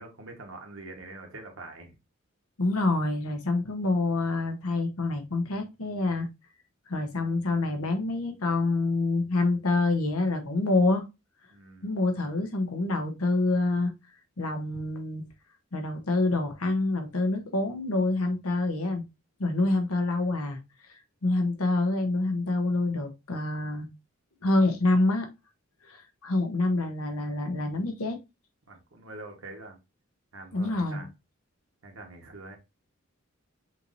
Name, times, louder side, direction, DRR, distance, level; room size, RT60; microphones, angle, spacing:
voice 1, 0.0-1.9 11.5-11.9 19.5-19.9 28.7-29.8 30.3-31.1 31.8-32.6, right 2 dB, 65° right, 1.3 m, -44 dB
voice 2, 2.6-6.3 6.9-11.0 11.8-13.9 14.4-15.2 15.7-19.0 19.4-20.6 20.9-23.9 24.4-25.3 25.8-28.2 30.5-31.0, left 2 dB, 85° left, 1.0 m, -27 dB
5.7 x 3.2 x 2.6 m
head